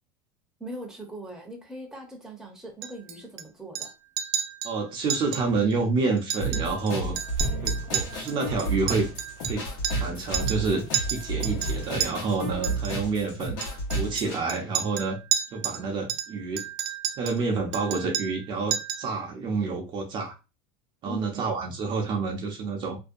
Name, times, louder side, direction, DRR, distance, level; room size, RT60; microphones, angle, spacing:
voice 1, 0.6-3.9 21.0-21.6, right 1 dB, 5° right, 0.7 m, -40 dB
Chink clink, 2.8-3.4 3.7-4.7 5.1-5.4 5.7-5.8 6.2-6.9 7.2-10.1 10.3-10.6 10.9-12.1 12.6-12.9 13.6-15.8 16.1-17.4 17.7-18.4 18.7-19.1, right 9 dB, 80° right, 0.4 m, -31 dB
voice 2, 4.6-7.2 7.6-9.1 9.5-10.8 11.1-13.6 13.9-15.2 15.5-16.7 17.2-20.3 21.0-23.0, right 4 dB, 40° right, 0.6 m, -28 dB
sound 1, 6.4-14.4, right 2 dB, 75° left, 1.0 m, -31 dB
sound 2, 7.1-12.7, left 3 dB, 35° left, 0.4 m, -40 dB
2.6 x 2.2 x 2.4 m
supercardioid pair, 120°, 12 cm